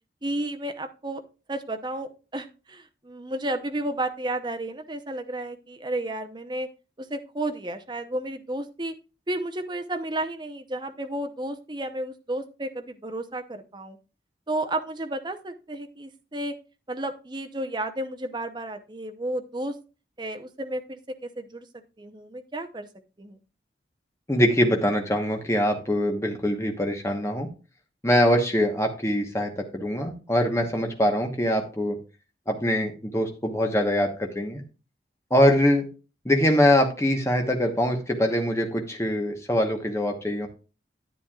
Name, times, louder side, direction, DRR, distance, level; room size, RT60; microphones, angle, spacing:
voice 1, 0.2-1.2 1.5-6.7 7.1-8.9 9.3-14.0 14.5-16.5 16.9-19.7 20.2-21.7 22.0-22.9 23.2-23.4, right 1 dB, 25° right, 7 dB, 0.7 m, -32 dB
voice 2, 24.3-27.5 28.0-32.0 32.5-34.6 35.3-35.9 36.2-40.5, equal, 15° left, 3 dB, 1.1 m, -23 dB
10.0 x 9.2 x 2.4 m, 0.32 s
head